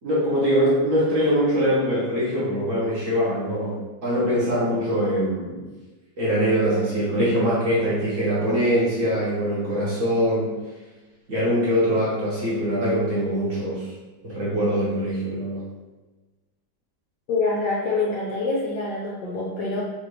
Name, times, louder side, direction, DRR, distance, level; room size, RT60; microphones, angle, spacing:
voice 1, 0.0-5.6 6.2-10.6 11.3-13.9 14.2-15.6, equal, 45° right, -8 dB, 1.2 m, -23 dB
voice 2, 17.3-19.8, left 3 dB, 70° left, -4 dB, 1.0 m, -25 dB
4.3 x 2.9 x 3.1 m, 1.2 s
omnidirectional pair, 2.2 m